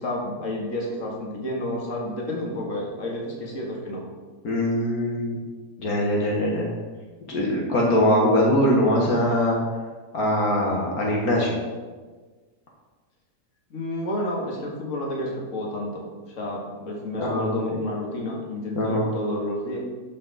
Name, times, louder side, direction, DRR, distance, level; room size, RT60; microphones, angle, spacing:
voice 1, 0.0-4.0 13.7-19.8, left 1 dB, 60° left, -1 dB, 2.1 m, -30 dB
voice 2, 4.4-5.4 5.8-6.7 7.3-9.6 10.1-11.6 17.2-17.6 18.8-19.1, left 1 dB, 75° left, -2 dB, 1.9 m, -22 dB
13.0 x 5.9 x 4.1 m, 1.4 s
omnidirectional pair, 1.6 m